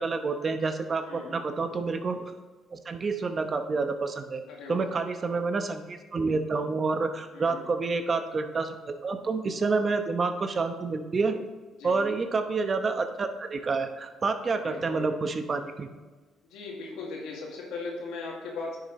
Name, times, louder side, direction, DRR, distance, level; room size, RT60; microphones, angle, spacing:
voice 1, 0.0-2.3 2.7-4.4 4.7-11.4 11.8-15.9, right 4 dB, 40° right, 7 dB, 1.0 m, -28 dB
voice 2, 4.5-4.9 7.3-7.6 11.7-12.0 14.5-15.1 16.5-18.8, left 3 dB, 85° left, -2 dB, 2.2 m, -38 dB
10.0 x 6.7 x 3.1 m, 1.3 s
supercardioid pair, 65°, 0 cm